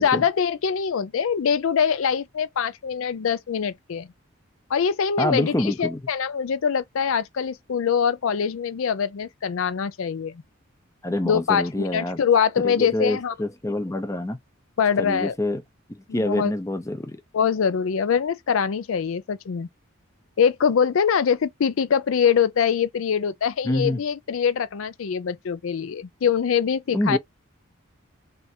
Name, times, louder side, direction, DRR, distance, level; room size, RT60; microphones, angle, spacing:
voice 1, 0.0-4.1 4.7-10.4 11.2-13.3 14.8-15.4 16.1-16.5 17.3-19.7 20.4-27.2, left 7 dB, 75° left, 0.4 m, -23 dB
voice 2, 5.2-6.0 11.0-12.2 12.6-14.4 15.0-15.6 15.9-17.2 23.6-24.0 26.9-27.2, left 1 dB, 15° left, 0.5 m, -26 dB
3.3 x 2.5 x 4.3 m
head